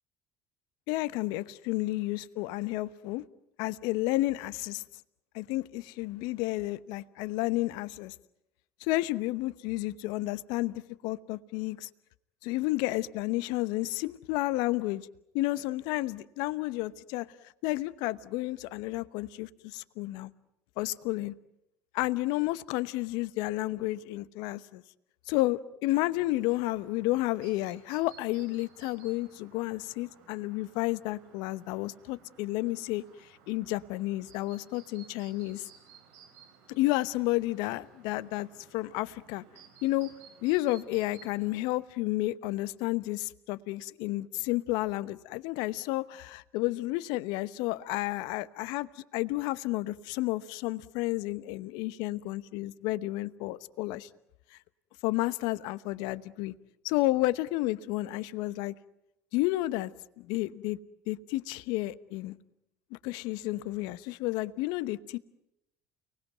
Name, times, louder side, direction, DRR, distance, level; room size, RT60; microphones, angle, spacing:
voice 1, 0.9-3.2 3.6-4.8 5.3-8.1 8.8-10.7 11.0-11.9 12.4-15.1 15.3-17.3 17.6-20.3 20.8-21.3 21.9-24.8 25.3-33.0 33.5-35.7 36.8-38.5 38.7-39.4 39.8-40.1 40.4-54.1 55.0-56.5 56.8-58.7 59.3-59.9 60.2-60.8 61.1-62.4 62.9-65.2, left 18 dB, 65° left, 1.0 m, -31 dB
Chirp tweet, 26.1-41.6, right 6 dB, 70° right, 6.3 m, -58 dB
30.0 x 20.0 x 9.2 m
hypercardioid pair, 70°, 8 cm